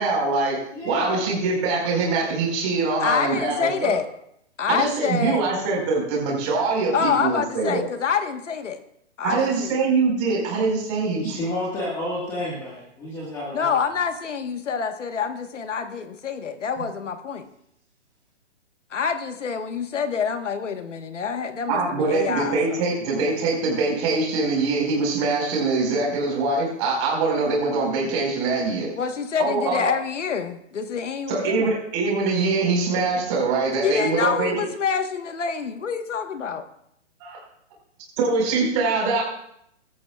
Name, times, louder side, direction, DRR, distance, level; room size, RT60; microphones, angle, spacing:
voice 1, 0.0-4.0 4.7-7.8 9.2-11.4 21.7-28.9 29.4-29.9 31.3-34.6 37.2-37.4 38.2-39.2, right 3 dB, 25° right, -2 dB, 4.7 m, -23 dB
voice 2, 0.7-1.2 11.2-13.9, left 1 dB, 10° left, -5 dB, 1.6 m, -30 dB
voice 3, 3.0-4.1 4.6-5.4 6.9-8.8 9.2-9.8 13.5-17.5 18.9-22.8 29.0-31.7 33.8-36.6, left 6 dB, 80° left, 8 dB, 1.4 m, -26 dB
22.0 x 14.0 x 2.4 m, 0.74 s
hypercardioid pair, 170°, 36 cm